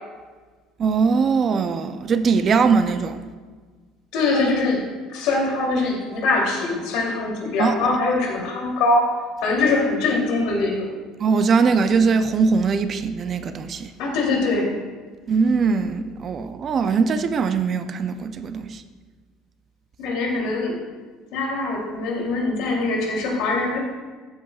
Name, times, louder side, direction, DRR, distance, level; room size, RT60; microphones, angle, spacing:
voice 1, 0.8-3.2 7.6-7.7 11.2-13.9 15.3-18.8, right 5 dB, 30° right, 0.4 m, -21 dB
voice 2, 4.1-4.8 5.1-9.2 9.4-11.0 14.0-14.7 20.0-20.8 21.3-23.8, left 3 dB, 65° left, 2.6 m, -22 dB
13.0 x 8.5 x 2.3 m
cardioid pair, 160°, 0 cm